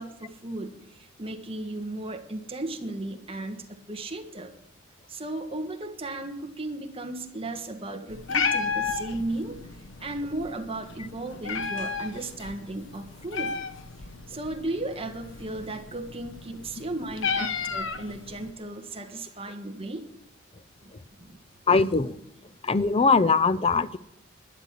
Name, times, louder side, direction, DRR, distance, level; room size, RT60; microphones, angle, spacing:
voice 1, 0.0-4.5 5.1-9.6 10.0-13.5 14.3-20.1 21.2-21.4, right 2 dB, 25° right, 4 dB, 1.5 m, -35 dB
Meow, 8.1-18.5, left 5 dB, 65° left, 1.2 m, -33 dB
voice 2, 21.7-22.1 22.6-24.0, left 4 dB, 25° left, 14 dB, 0.5 m, -21 dB
11.5 x 10.0 x 7.5 m, 0.79 s
head